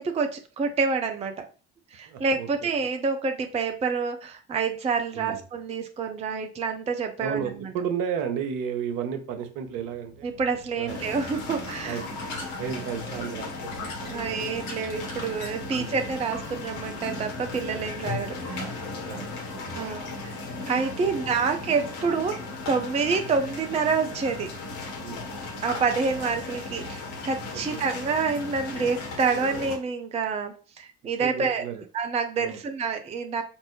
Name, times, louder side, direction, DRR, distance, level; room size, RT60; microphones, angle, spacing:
voice 1, 0.0-1.4 1.9-7.5 10.2-12.0 14.1-18.9 19.7-20.3 20.7-22.4 22.7-24.5 25.6-31.6 31.9-33.4, right 5 dB, 15° right, 6 dB, 0.5 m, -28 dB
voice 2, 2.1-2.7 5.1-5.4 7.2-10.3 10.8-11.0 11.8-12.1 12.6-14.6 15.7-16.0 19.0-19.9 21.0-21.1 25.0-25.3 27.5-27.8 31.2-31.8 32.4-32.6, right 7 dB, 55° right, 7 dB, 0.9 m, -33 dB
sound 1, 9.7-16.6, left 2 dB, 80° left, 1.0 m, -45 dB
sound 2, 10.9-29.8, left 3 dB, 60° left, 1.4 m, -36 dB
5.2 x 2.6 x 3.2 m, 0.37 s
figure-of-eight pair, 55°, 40 cm